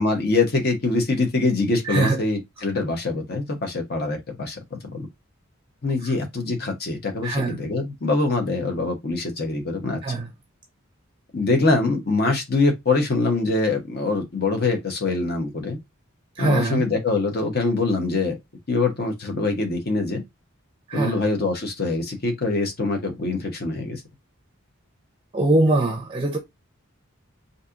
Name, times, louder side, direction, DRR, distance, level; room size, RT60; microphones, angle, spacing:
voice 1, 0.0-4.6 4.9-5.1 5.8-10.0 11.3-15.8 16.4-18.4 18.7-20.2 20.9-24.0, left 3 dB, 50° left, 0.9 m, -24 dB
voice 2, 1.9-2.2 7.2-7.5 10.0-10.3 16.4-16.8 20.9-21.1 25.3-26.4, right 2 dB, 25° right, 0.5 m, -22 dB
4.1 x 2.7 x 2.4 m
head